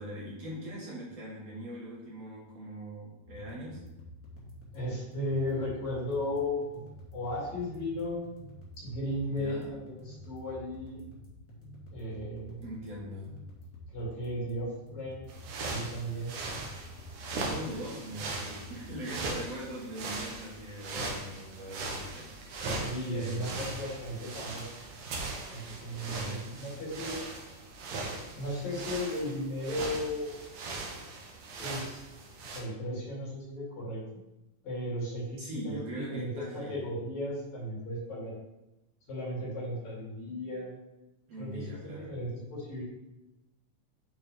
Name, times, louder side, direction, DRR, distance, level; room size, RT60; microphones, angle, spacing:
voice 1, 0.0-3.8 9.3-9.8 12.6-13.3 17.5-22.3 23.1-23.7 26.1-26.5 35.4-36.9 41.3-42.1, right 1 dB, 55° right, -6 dB, 2.7 m, -41 dB
sound 1, 3.2-19.2, left 1 dB, 5° left, 1.0 m, -49 dB
voice 2, 4.7-6.8 7.1-8.2 8.8-11.0 11.9-12.6 13.9-16.4 22.6-24.7 25.5-27.2 28.3-30.4 31.6-32.0 32.4-34.2 34.6-38.3 39.1-40.8 41.4-42.8, left 1 dB, 60° left, -7 dB, 4.0 m, -35 dB
sound 2, 15.3-32.6, right 3 dB, 75° right, 2.5 m, -39 dB
8.8 x 4.6 x 3.4 m, 0.96 s
omnidirectional pair, 3.6 m